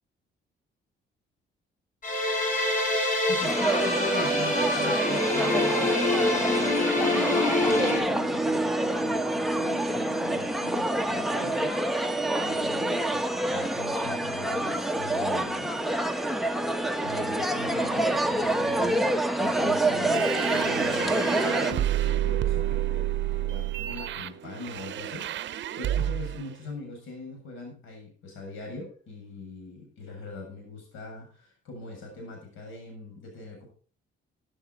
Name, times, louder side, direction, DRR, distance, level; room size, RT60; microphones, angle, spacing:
sound 1, 2.0-8.0, left 1 dB, 40° left, 3.6 m, -26 dB
voice 1, 3.3-6.8 7.1-7.3 7.5-11.8 12.4-15.7 16.6-23.1 23.4-33.7, left 2 dB, 85° left, 2 dB, 7.6 m, -41 dB
sound 2, 3.4-21.7, right 1 dB, ahead, 1.1 m, -27 dB
sound 3, 20.0-26.4, right 12 dB, 65° right, 0.7 m, -29 dB
15.0 x 10.0 x 4.1 m, 0.41 s
cardioid pair, 90°, 20 cm